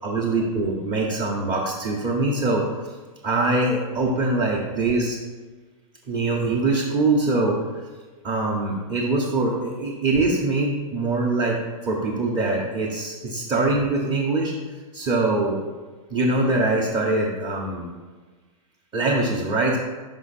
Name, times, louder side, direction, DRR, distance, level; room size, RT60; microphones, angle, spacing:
voice 1, 0.0-2.7 3.2-5.2 6.1-7.6 8.2-11.6 11.8-14.5 14.9-15.6 16.1-17.9 18.9-19.8, right 2 dB, 20° right, -3 dB, 0.9 m, -23 dB
5.5 x 5.4 x 4.2 m, 1.3 s
supercardioid pair, 150°, 19 cm